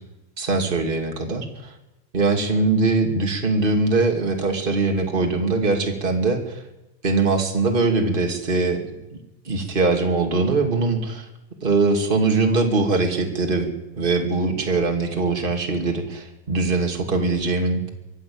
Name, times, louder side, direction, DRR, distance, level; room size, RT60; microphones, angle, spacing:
voice 1, 0.4-1.7 2.1-6.6 7.0-8.8 9.4-11.3 11.6-17.8, right 3 dB, 20° right, 2 dB, 1.3 m, -22 dB
24.0 x 15.0 x 8.8 m, 0.98 s
omnidirectional pair, 5.8 m